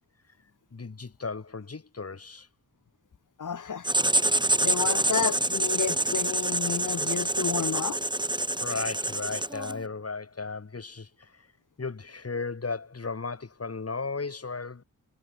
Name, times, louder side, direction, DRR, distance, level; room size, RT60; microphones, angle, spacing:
voice 1, 0.7-2.5 8.6-11.5 11.8-14.8, left 4 dB, 50° left, 5.5 m, -35 dB
voice 2, 3.4-3.9 4.6-8.0, left 6 dB, 70° left, 2.2 m, -31 dB
Writing, 3.8-9.8, right 1 dB, 15° right, 2.0 m, -26 dB
wide cardioid pair, 80°, 32 cm